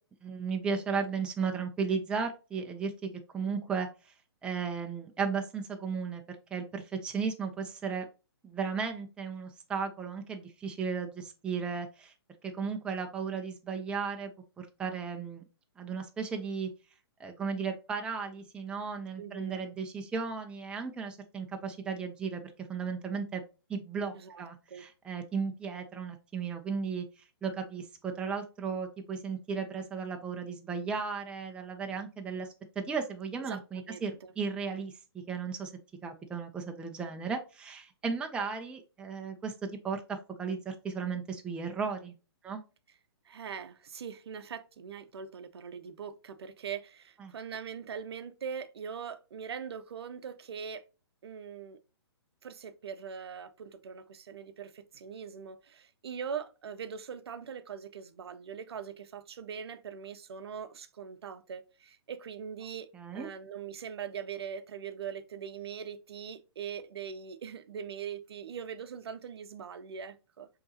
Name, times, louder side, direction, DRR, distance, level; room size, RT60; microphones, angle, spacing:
voice 1, 0.2-3.9 4.4-6.2 6.5-8.1 8.4-12.1 12.4-14.3 14.6-15.4 15.8-16.7 17.2-23.4 23.7-27.1 27.4-32.5 32.8-35.7 36.0-42.1 42.4-42.6 47.2-47.3 62.9-63.3, right 5 dB, 5° right, 0.4 m, -35 dB
voice 2, 19.2-19.6 24.1-24.8 33.5-34.3 43.2-50.8 51.2-51.8 52.4-62.9 63.1-70.5, right 7 dB, 70° right, 0.6 m, -41 dB
5.3 x 2.9 x 2.7 m
hypercardioid pair, 135°, 14 cm